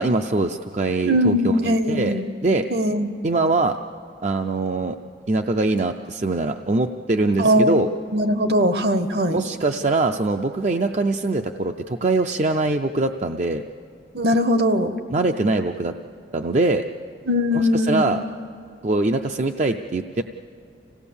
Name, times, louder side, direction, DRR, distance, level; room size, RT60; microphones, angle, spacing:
voice 1, 0.0-2.1 2.4-2.7 3.2-3.8 4.2-5.0 5.3-7.9 9.3-13.6 15.1-15.9 16.3-16.9 17.5-18.2 18.8-20.2, right 2 dB, 40° right, 5 dB, 0.5 m, -22 dB
voice 2, 1.1-2.3 2.7-3.1 7.4-7.7 8.1-9.4 14.1-14.9 17.3-18.1, equal, 60° right, 9 dB, 1.0 m, -20 dB
26.0 x 17.0 x 7.0 m, 2.5 s
head